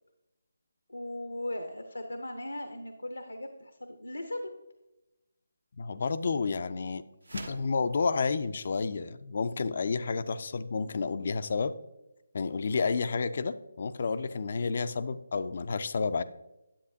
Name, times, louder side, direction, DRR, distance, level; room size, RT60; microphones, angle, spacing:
voice 1, 0.9-4.5, left 1 dB, 80° left, 6 dB, 0.8 m, -38 dB
voice 2, 5.8-7.0 7.3-11.7 12.3-16.2, left 4 dB, 45° left, 13 dB, 0.4 m, -30 dB
sound 1, 7.2-7.8, right 2 dB, 70° right, 1.1 m, -43 dB
10.0 x 7.9 x 2.7 m, 0.96 s
figure-of-eight pair, 150°, 0 cm